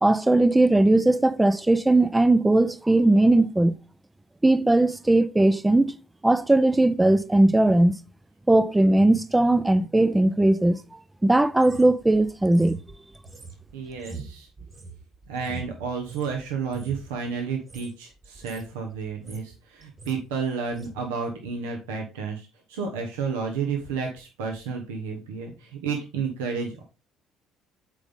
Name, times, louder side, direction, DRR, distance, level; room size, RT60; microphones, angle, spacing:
voice 1, 0.0-3.8 4.4-6.0 6.2-7.9 8.5-10.8 11.2-12.8, right 2 dB, 10° right, 0.5 m, -19 dB
sound 1, 11.6-16.3 16.7-17.1 17.6-17.9 18.2-18.7 19.0-19.6 19.8-20.2 20.7-20.9, right 3 dB, 35° right, 2.0 m, -42 dB
voice 2, 13.7-14.5 15.3-26.8, right 5 dB, 80° right, 1.1 m, -31 dB
8.1 x 4.0 x 3.5 m
hypercardioid pair, 60°, 0 cm